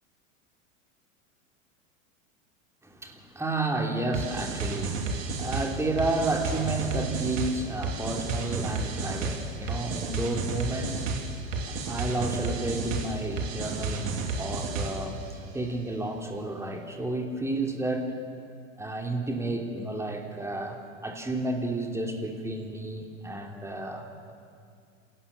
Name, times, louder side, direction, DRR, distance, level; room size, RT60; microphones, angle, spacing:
voice 1, 2.8-11.3 11.5-18.1 18.8-24.3, right 2 dB, 5° right, 2 dB, 2.9 m, -31 dB
sound 1, 4.1-15.2, right 3 dB, 75° right, 2.9 m, -32 dB
27.5 x 18.0 x 7.3 m, 2.3 s
hypercardioid pair, 110°, 40 cm